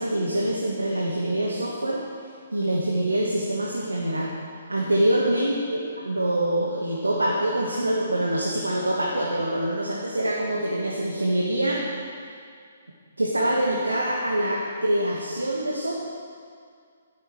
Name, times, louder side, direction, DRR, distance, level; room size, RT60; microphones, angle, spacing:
voice 1, 0.0-2.0 2.5-4.3 4.7-11.8 13.2-15.9, right 1 dB, 85° right, -3 dB, 1.8 m, -25 dB
12.5 x 12.0 x 4.8 m, 2.1 s
figure-of-eight pair, 130°, 0 cm